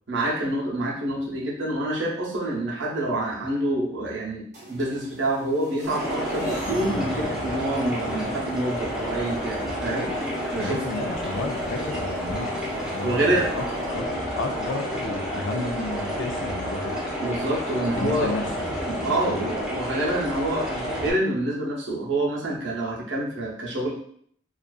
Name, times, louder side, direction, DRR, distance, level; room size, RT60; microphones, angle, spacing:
voice 1, 0.1-10.1 10.5-10.8 13.0-13.5 17.2-18.3 18.8-23.9, right 1 dB, 70° right, -4 dB, 0.7 m, -27 dB
sound 1, 4.5-13.9, right 1 dB, 40° right, 0.8 m, -42 dB
sound 2, 5.8-21.1, equal, 5° right, 0.6 m, -30 dB
voice 2, 10.6-17.0 17.9-18.5 18.8-19.5 20.9-21.0, left 3 dB, 75° left, 4 dB, 0.4 m, -32 dB
2.4 x 2.4 x 2.3 m, 0.62 s
head